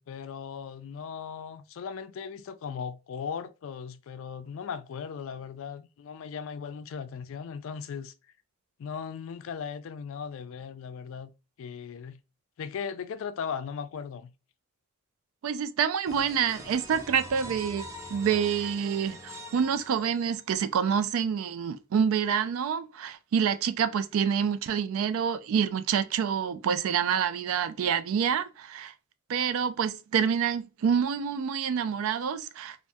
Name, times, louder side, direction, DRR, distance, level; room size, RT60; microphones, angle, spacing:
voice 1, 0.0-8.1 8.8-11.3 11.6-12.2 12.6-14.3, left 6 dB, 65° left, 0.3 m, -38 dB
voice 2, 15.4-28.9 29.3-32.8, right 7 dB, 75° right, 0.3 m, -27 dB
sound 1, 16.1-20.7, equal, 15° right, 0.5 m, -43 dB
3.4 x 2.1 x 2.5 m
head